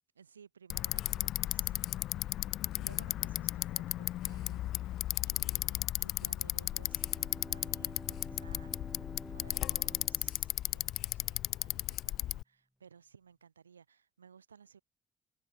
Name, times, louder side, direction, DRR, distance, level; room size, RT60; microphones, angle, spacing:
voice 1, 0.1-1.9 2.4-9.0 9.3-14.8, right 7 dB, 85° right, 4.7 m, -58 dB
Bicycle, 0.7-12.4, left 14 dB, 60° left, 1.5 m, -35 dB
Bowed string instrument, 6.5-11.1, equal, ahead, 4.9 m, -50 dB
figure-of-eight pair, 45°, 0 cm